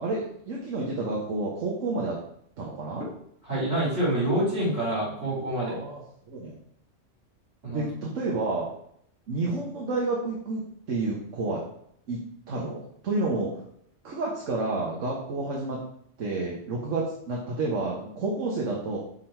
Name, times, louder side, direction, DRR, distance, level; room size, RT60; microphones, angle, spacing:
voice 1, 0.0-2.2 2.6-3.1 5.6-6.0 6.3-6.6 7.7-8.7 9.3-11.6 12.1-12.2 12.5-13.6 14.0-15.8 16.2-19.0, right 3 dB, 80° right, -2 dB, 1.4 m, -30 dB
voice 2, 3.5-5.8 7.6-7.8, right 1 dB, 60° right, -6 dB, 3.2 m, -27 dB
5.9 x 3.9 x 4.4 m, 0.68 s
omnidirectional pair, 1.3 m